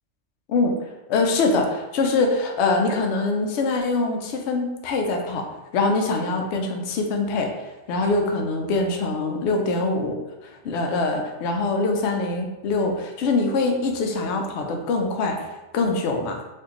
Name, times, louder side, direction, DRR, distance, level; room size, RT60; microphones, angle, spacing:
voice 1, 1.1-5.5 5.7-7.5 7.9-10.2 10.4-15.4 15.7-16.4, left 3 dB, 70° left, 2 dB, 0.8 m, -23 dB
4.3 x 2.4 x 2.9 m, 1.1 s
omnidirectional pair, 1.3 m